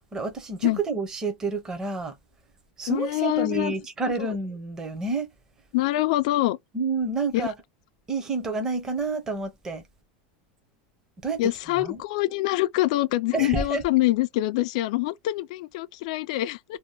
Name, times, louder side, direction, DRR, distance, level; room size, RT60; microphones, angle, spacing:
voice 1, 0.1-2.2 2.8-5.3 6.7-7.5 8.1-9.8 11.2-11.4 11.8-12.0 13.3-13.8, right 3 dB, 10° right, 0.6 m, -29 dB
voice 2, 2.9-3.7 4.2-4.3 5.7-6.6 7.3-7.5 11.4-16.8, left 17 dB, 50° left, 0.3 m, -25 dB
2.7 x 2.2 x 3.3 m
supercardioid pair, 175°, 5 cm